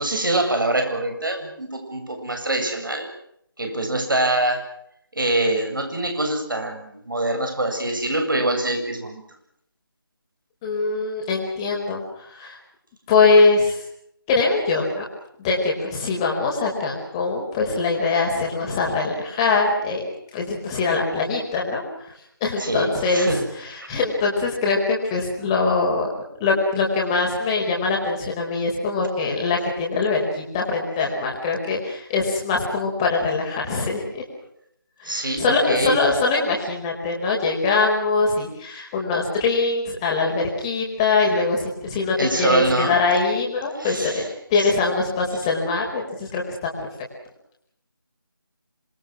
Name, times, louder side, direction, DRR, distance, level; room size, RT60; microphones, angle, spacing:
voice 1, 0.0-3.1 3.6-4.7 5.1-9.2 22.6-23.5 35.0-36.0 42.2-43.0 43.8-44.2 44.6-44.7, right 1 dB, 65° right, 6 dB, 7.6 m, -24 dB
voice 2, 10.6-12.0 12.3-12.6 13.1-13.8 14.3-15.1 15.4-20.0 20.3-21.8 22.4-26.1 26.4-34.2 35.0-46.7, left 3 dB, 15° left, 0 dB, 4.6 m, -22 dB
27.0 x 22.5 x 6.3 m, 0.72 s
figure-of-eight pair, 160°, 12 cm